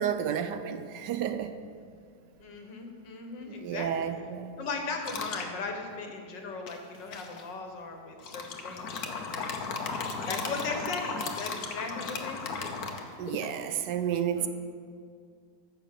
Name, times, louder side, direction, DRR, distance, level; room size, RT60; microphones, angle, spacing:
voice 1, 0.0-1.5 3.4-4.5 13.2-14.5, right 9 dB, 80° right, 10 dB, 1.3 m, -31 dB
voice 2, 2.4-4.1 4.6-9.7 10.3-13.2 14.4-14.5, left 4 dB, 85° left, 3 dB, 2.1 m, -38 dB
sound 1, 5.0-5.5 6.7-7.4 8.2-13.5, left 4 dB, 60° left, 1.4 m, -36 dB
14.5 x 6.3 x 6.7 m, 2.1 s
omnidirectional pair, 1.9 m